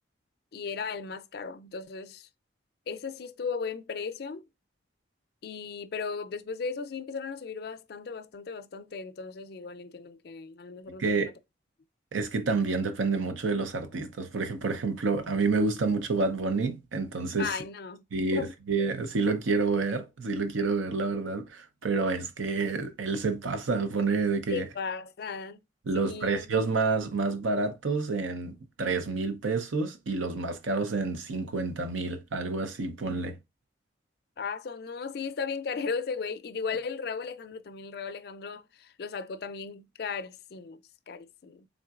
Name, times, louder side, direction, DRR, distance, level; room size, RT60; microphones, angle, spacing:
voice 1, 0.5-2.3 2.9-4.5 5.4-11.3 17.4-18.5 24.5-25.6 25.9-26.5 34.4-41.7, left 5 dB, 55° left, 0.4 m, -36 dB
voice 2, 11.0-11.3 12.1-17.5 18.1-24.7 25.9-33.4, right 4 dB, 90° right, 0.7 m, -29 dB
3.7 x 3.6 x 2.4 m
head